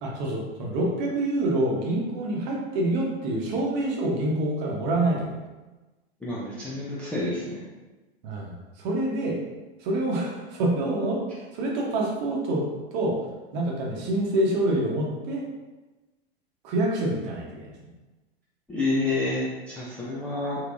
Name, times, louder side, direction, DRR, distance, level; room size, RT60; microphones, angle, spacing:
voice 1, 0.0-5.4 8.2-9.4 9.8-11.2 11.5-12.6 12.9-13.2 13.5-15.4 16.6-17.7, right 1 dB, 40° right, -2 dB, 0.9 m, -26 dB
voice 2, 6.2-7.6 18.7-20.6, left 2 dB, 5° left, -9 dB, 0.3 m, -28 dB
3.5 x 3.0 x 2.5 m, 1.2 s
figure-of-eight pair, 95°, 32 cm